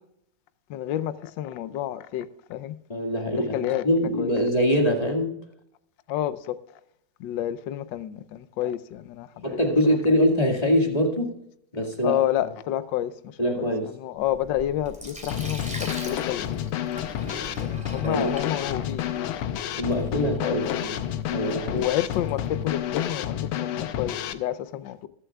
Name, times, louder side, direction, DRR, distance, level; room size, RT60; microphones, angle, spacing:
voice 1, 0.7-2.7 3.3-4.4 4.8-5.0 6.1-6.6 7.2-10.0 12.0-13.1 13.5-16.8 17.3-19.5 20.0-20.8 21.7-25.1, left 12 dB, 75° left, 1.3 m, -30 dB
voice 2, 2.9-5.4 9.4-11.3 11.7-12.2 13.4-13.9 18.0-18.3 19.8-20.9 21.3-21.9, equal, 20° left, 2.0 m, -24 dB
Sink (filling or washing), 14.2-23.0, equal, 5° right, 2.6 m, -42 dB
Drum kit / Snare drum, 15.3-24.3, left 10 dB, 90° left, 1.5 m, -30 dB
21.5 x 7.8 x 2.4 m
omnidirectional pair, 2.2 m